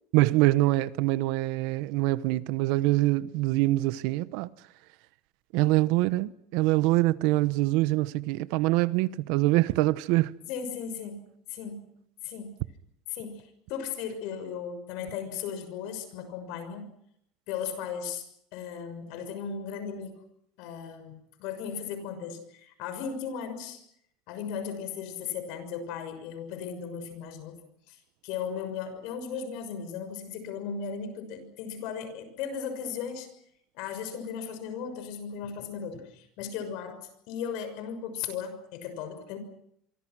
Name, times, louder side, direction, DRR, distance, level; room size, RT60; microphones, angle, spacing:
voice 1, 0.1-4.5 5.5-10.3, right 18 dB, 65° right, 0.9 m, -24 dB
voice 2, 10.5-11.9 12.2-12.6 13.1-16.9 17.5-18.2 18.5-20.1 20.6-23.8 24.3-27.6 27.9-33.3 33.7-39.4, left 7 dB, 60° left, 6.3 m, -36 dB
27.0 x 24.5 x 6.2 m
cardioid pair, 165°, 0 cm